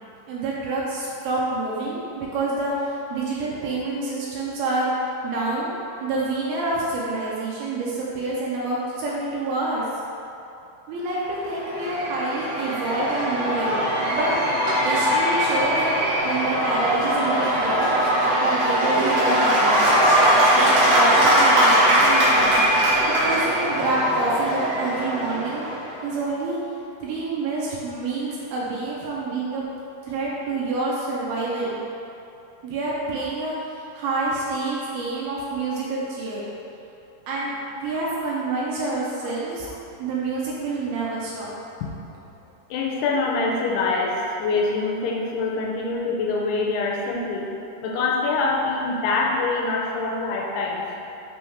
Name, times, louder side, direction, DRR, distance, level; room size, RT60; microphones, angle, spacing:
voice 1, 0.3-4.9 5.2-5.8 6.0-9.8 10.9-13.8 14.1-14.6 14.8-15.9 16.2-18.1 18.4-20.1 20.6-22.5 23.2-25.7 26.0-26.6 27.0-29.6 30.0-31.7 32.6-36.4 37.3-39.7 40.0-41.5, right 2 dB, 80° right, -5 dB, 2.5 m, -27 dB
Cheering / Applause / Crowd, 11.3-26.0, equal, 60° right, 2.6 m, -20 dB
voice 2, 42.7-47.5 47.8-50.8, left 3 dB, 85° left, -2 dB, 2.6 m, -24 dB
6.2 x 3.5 x 4.5 m, 2.9 s
omnidirectional pair, 4.6 m